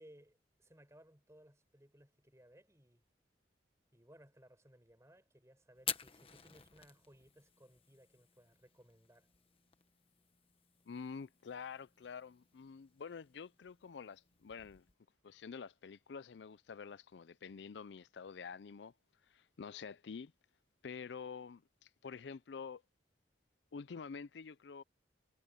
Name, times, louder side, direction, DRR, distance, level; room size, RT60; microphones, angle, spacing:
voice 1, 0.0-3.0 3.9-9.3, equal, 15° right, 6.2 m, -63 dB
Fire, 5.7-14.9, left 9 dB, 30° left, 1.3 m, -50 dB
voice 2, 10.9-14.9 15.2-18.9 19.3-20.3 20.8-22.8 23.7-24.8, left 6 dB, 80° left, 0.5 m, -48 dB
head